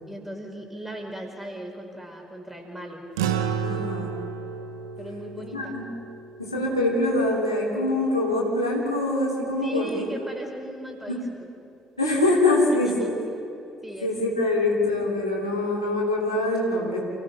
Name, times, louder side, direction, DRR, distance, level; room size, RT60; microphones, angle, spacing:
voice 1, 0.1-3.0 5.0-5.7 9.6-11.3 12.8-13.1 13.8-14.1, right 1 dB, 5° right, 1 dB, 5.1 m, -38 dB
sound 1, 3.2-7.8, right 7 dB, 75° right, 1.1 m, -32 dB
voice 2, 3.6-4.1 5.5-5.9 6.4-10.1 11.1-11.2 12.0-13.2 14.0-17.0, left 2 dB, 85° left, -4 dB, 2.8 m, -24 dB
29.0 x 16.5 x 5.5 m, 2.7 s
figure-of-eight pair, 45°, 2 cm